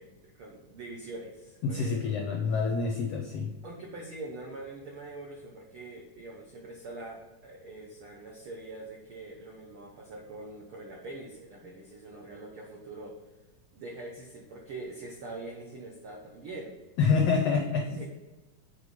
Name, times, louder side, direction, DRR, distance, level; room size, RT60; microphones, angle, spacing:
voice 1, 0.0-2.2 3.6-13.1 13.7-16.7 18.0-18.1, right 2 dB, 80° right, -1 dB, 1.2 m, -43 dB
voice 2, 1.6-3.5 17.0-18.0, left 5 dB, 80° left, 1 dB, 1.4 m, -27 dB
6.8 x 4.4 x 5.1 m, 1.1 s
omnidirectional pair, 3.9 m